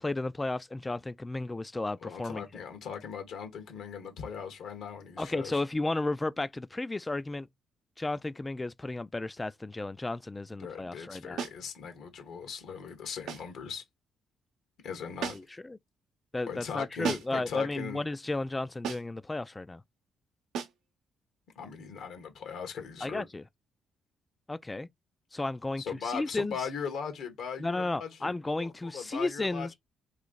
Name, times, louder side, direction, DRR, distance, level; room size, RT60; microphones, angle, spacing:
voice 1, 0.0-2.4 5.2-7.5 8.0-11.4 15.3-15.8 16.3-19.8 23.0-23.4 24.5-24.9 25.3-25.8 26.1-26.6 27.6-29.7, left 2 dB, 20° left, 0.3 m, -33 dB
voice 2, 2.0-5.6 10.6-13.8 14.8-15.4 16.5-18.1 21.5-23.3 25.8-29.7, left 6 dB, 75° left, 1.3 m, -39 dB
sound 1, 11.4-11.7 13.3-13.6 15.2-15.6 17.0-17.5 18.8-19.2 20.5-20.9, right 7 dB, 85° right, 0.8 m, -36 dB
3.2 x 2.7 x 3.9 m
cardioid pair, 90°, 0 cm